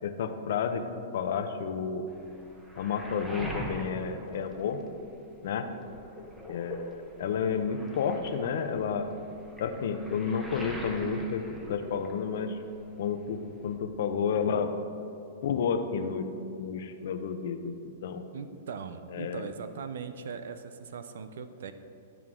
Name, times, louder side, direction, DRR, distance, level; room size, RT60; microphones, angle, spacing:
voice 1, 0.0-0.8 1.1-2.0 2.8-4.8 5.4-5.7 6.5-6.9 7.2-9.1 9.6-12.6 13.0-14.7 15.4-16.3 16.6-17.7 18.0-18.2 19.1-19.5, left 6 dB, 70° left, 7 dB, 0.7 m, -31 dB
Waves surf, 2.1-5.3 5.6-12.6 12.8-13.8, equal, 10° right, 1.1 m, -43 dB
voice 2, 18.3-21.7, right 6 dB, 75° right, 10 dB, 0.5 m, -40 dB
12.5 x 4.6 x 3.7 m, 2.8 s
hypercardioid pair, 130°, 0 cm